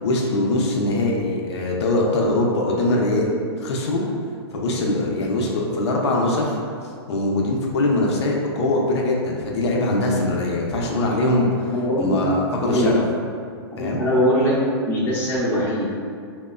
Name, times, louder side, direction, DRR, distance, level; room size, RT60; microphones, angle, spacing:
voice 1, 0.0-4.0 4.5-6.6 7.1-11.7 12.0-13.0 13.8-14.0, left 2 dB, 75° left, -2 dB, 0.5 m, -22 dB
voice 2, 11.7-12.1 12.7-12.9 13.7-14.6 14.9-15.9, equal, 15° left, -8 dB, 0.4 m, -21 dB
2.8 x 2.1 x 2.3 m, 2.2 s
hypercardioid pair, 160°, 14 cm